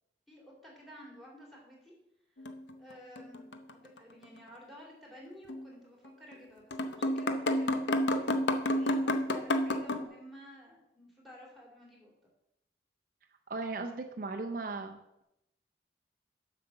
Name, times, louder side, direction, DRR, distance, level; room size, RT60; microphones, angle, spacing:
voice 1, 0.3-1.9 2.4-2.5 2.8-8.2 8.7-12.1, equal, ahead, -2 dB, 2.4 m, -52 dB
sound 1, 2.4-3.7 4.0-4.1 5.5-5.7 6.3-6.4 6.7-10.0, left 1 dB, 75° left, 0.7 m, -30 dB
voice 2, 13.5-15.2, right 3 dB, 50° right, 4 dB, 0.5 m, -37 dB
7.6 x 5.8 x 6.9 m, 0.87 s
head